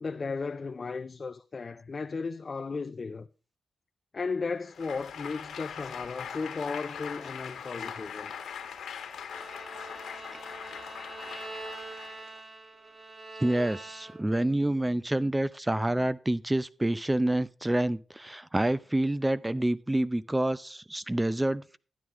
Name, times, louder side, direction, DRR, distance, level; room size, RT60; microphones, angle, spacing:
voice 1, 0.0-3.3 4.1-8.3, left 4 dB, 45° left, 0.5 m, -35 dB
Applause, 4.7-12.4, left 7 dB, 80° left, 1.6 m, -41 dB
Bowed string instrument, 9.3-14.5, right 2 dB, 55° right, 2.6 m, -44 dB
voice 2, 13.4-21.8, right 1 dB, 15° right, 0.5 m, -28 dB
12.5 x 9.4 x 3.6 m
cardioid pair, 55°, 0 cm